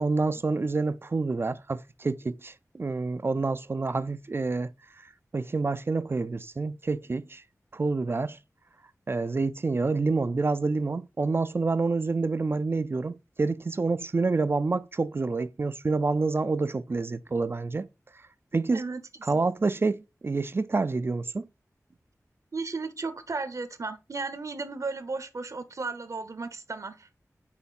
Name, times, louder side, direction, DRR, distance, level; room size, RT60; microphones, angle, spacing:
voice 1, 0.0-4.7 5.3-7.4 7.7-8.4 9.1-17.9 18.5-18.8 19.2-21.5, right 3 dB, 40° right, 0.3 m, -28 dB
voice 2, 18.7-19.4 22.5-27.3, right 3 dB, 60° right, 0.8 m, -35 dB
5.8 x 4.0 x 4.1 m
wide cardioid pair, 75°, 6 cm